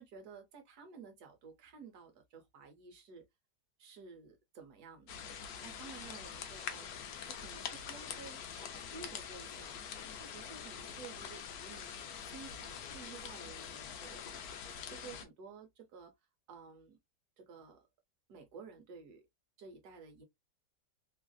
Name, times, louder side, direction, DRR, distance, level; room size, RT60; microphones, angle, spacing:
voice 1, 0.0-3.2 3.8-5.1 5.6-6.9 7.2-9.8 10.2-14.6 14.9-16.1 16.5-17.0 17.4-17.9 18.3-19.2 19.6-20.2, right 5 dB, 65° right, 1.2 m, -53 dB
sound 1, 5.1-15.3, left 7 dB, 70° left, 1.0 m, -45 dB
3.2 x 2.5 x 2.2 m
omnidirectional pair, 1.9 m